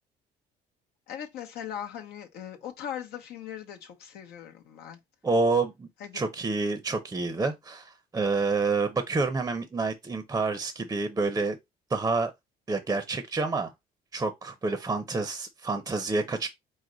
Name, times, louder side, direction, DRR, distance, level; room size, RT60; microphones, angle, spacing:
voice 1, 1.1-5.0 6.0-6.2, left 9 dB, 75° left, 0.8 m, -39 dB
voice 2, 5.2-5.9 6.1-11.6 11.9-12.3 12.7-13.7 14.1-16.5, right 3 dB, 20° right, 0.6 m, -28 dB
4.7 x 2.1 x 3.8 m
cardioid pair, 110°, 17 cm